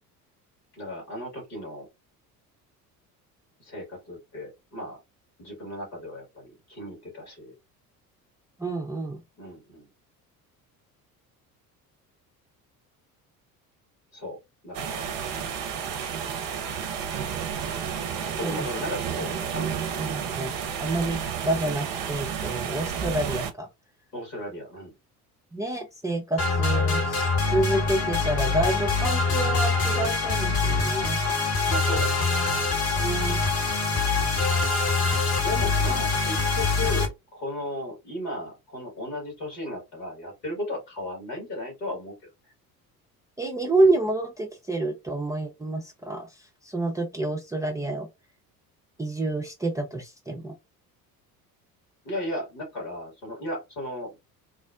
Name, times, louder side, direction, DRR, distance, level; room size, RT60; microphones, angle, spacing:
voice 1, 0.7-1.9 3.6-5.0 5.4-7.5 9.4-9.9 14.1-15.1 18.2-20.2 24.1-24.9 31.7-32.5 35.4-42.1 42.4-42.5 52.0-54.2, left 1 dB, 70° left, 1.9 m, -36 dB
voice 2, 8.6-9.2 18.4-18.7 20.0-20.5 20.8-23.7 25.5-31.2 33.0-33.4 43.4-48.1 49.0-50.5, right 2 dB, 5° right, 0.5 m, -28 dB
sound 1, 14.7-23.5, right 7 dB, 45° right, 0.6 m, -31 dB
sound 2, 26.4-37.1, left 3 dB, 30° left, 1.0 m, -24 dB
3.7 x 2.0 x 2.4 m
figure-of-eight pair, 60°, 48 cm